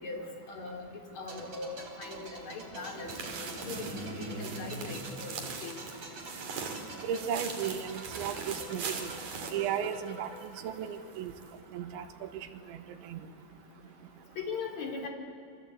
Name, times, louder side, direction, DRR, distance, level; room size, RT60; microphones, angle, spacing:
voice 1, 0.5-0.8 1.2-3.9 4.4-5.8 14.4-15.1, left 4 dB, 40° left, 2 dB, 4.4 m, -40 dB
sound 1, 1.3-11.9 12.1-12.3, right 2 dB, 35° right, 3.8 m, -47 dB
sound 2, 2.6-6.2, right 1 dB, 65° right, 8.6 m, -43 dB
sound 3, 2.8-10.5 10.8-10.9 11.4-11.5, right 5 dB, 50° right, 4.0 m, -41 dB
voice 2, 7.0-9.1 9.5-10.3 10.6-11.3 11.7-12.3 12.7-12.8 13.1-13.2, right 8 dB, 90° right, 7 dB, 3.8 m, -35 dB
29.5 x 23.5 x 8.4 m, 2.4 s
omnidirectional pair, 5.2 m